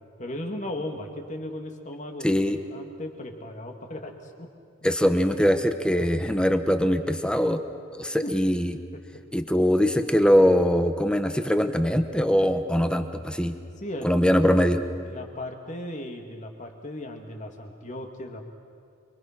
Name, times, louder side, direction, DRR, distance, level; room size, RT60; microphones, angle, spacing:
voice 1, 0.2-4.5 6.1-6.2 8.2-8.3 9.1-9.2 13.8-14.4 14.7-18.5, left 1 dB, 40° left, 3 dB, 2.4 m, -37 dB
voice 2, 2.2-2.6 4.8-7.6 7.9-8.7 9.3-13.5 14.0-14.8, equal, 5° left, 8 dB, 1.1 m, -22 dB
28.0 x 23.0 x 6.1 m, 2.3 s
head